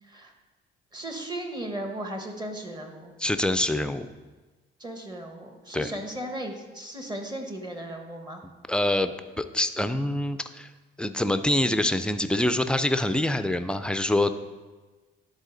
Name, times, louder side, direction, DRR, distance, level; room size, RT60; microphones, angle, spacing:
voice 1, 0.9-3.1 4.8-8.4, right 1 dB, 20° right, 4 dB, 1.1 m, -36 dB
voice 2, 3.2-4.1 5.7-5.9 8.7-10.7 11.0-14.4, left 1 dB, 5° left, 10 dB, 0.4 m, -25 dB
11.0 x 4.1 x 3.8 m, 1.3 s
cardioid pair, 90°, 20 cm